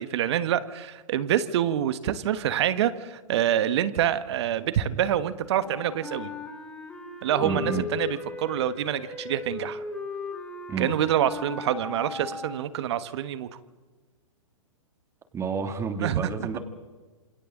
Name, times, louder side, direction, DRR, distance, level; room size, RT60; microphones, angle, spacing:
voice 1, 0.0-6.3 7.2-9.8 10.8-13.5 16.0-16.5, right 10 dB, 55° right, 13 dB, 1.5 m, -26 dB
Wind instrument woodwind instrument, 5.6-12.9, left 4 dB, 10° left, 4.5 m, -37 dB
voice 2, 7.4-7.9 10.7-10.9 15.3-16.6, right 5 dB, 15° right, 7 dB, 2.7 m, -30 dB
27.5 x 27.5 x 4.0 m, 1.3 s
hypercardioid pair, 125°, 17 cm